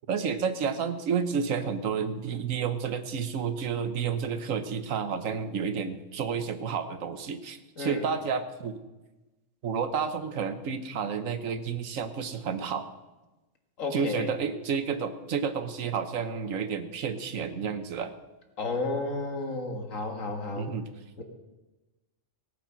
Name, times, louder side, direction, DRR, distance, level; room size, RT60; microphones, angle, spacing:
voice 1, 0.1-8.8 9.6-12.9 13.9-18.1 20.6-20.9, right 6 dB, 90° right, 10 dB, 1.4 m, -30 dB
voice 2, 13.8-14.3 18.6-20.7 21.2-21.3, left 3 dB, 90° left, 4 dB, 2.2 m, -32 dB
18.0 x 8.9 x 5.8 m, 1.1 s
omnidirectional pair, 1.3 m